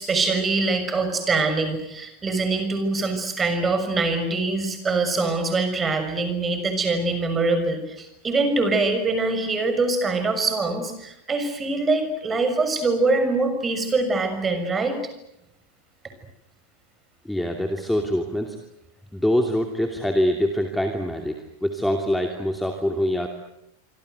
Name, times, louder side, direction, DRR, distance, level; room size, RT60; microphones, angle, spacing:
voice 1, 0.0-15.0, right 3 dB, 20° right, 8 dB, 6.4 m, -24 dB
voice 2, 17.2-18.6 19.1-23.3, left 1 dB, 5° left, 4 dB, 2.7 m, -24 dB
26.5 x 25.5 x 8.1 m, 0.85 s
figure-of-eight pair, 90°, 0 cm